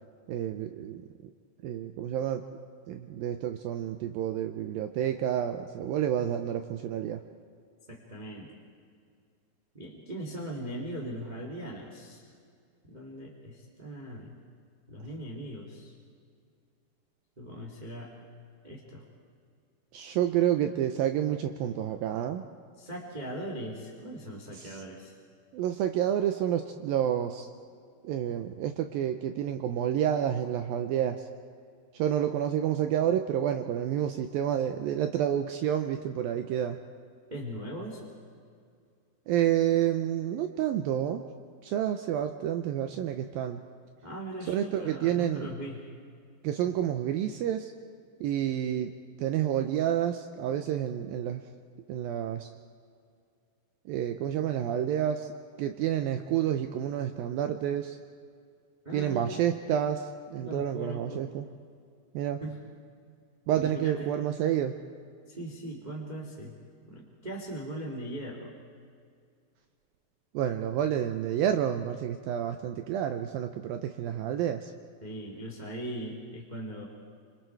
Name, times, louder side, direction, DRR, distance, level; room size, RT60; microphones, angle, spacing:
voice 1, 0.3-1.1 1.6-2.4 2.9-7.2 19.9-22.4 24.5-24.8 25.5-27.5 28.0-31.3 31.9-36.8 39.3-41.2 41.6-43.6 44.5-45.5 46.4-47.7 48.2-48.9 49.2-51.4 51.9-52.5 53.9-55.3 55.6-58.0 58.9-61.5 62.1-62.4 63.5-64.8 70.3-74.7, right 10 dB, 85° right, 7 dB, 2.1 m, -29 dB
voice 2, 7.9-8.5 9.7-12.2 12.9-14.3 14.9-15.9 17.4-18.1 18.6-19.0 22.8-25.1 37.3-38.1 44.0-45.9 58.8-59.4 60.4-61.2 62.4-62.6 63.6-64.1 65.3-66.6 66.8-68.5 75.0-76.8, right 1 dB, 15° right, -1 dB, 1.4 m, -39 dB
27.0 x 26.5 x 4.6 m, 2.2 s
omnidirectional pair, 5.0 m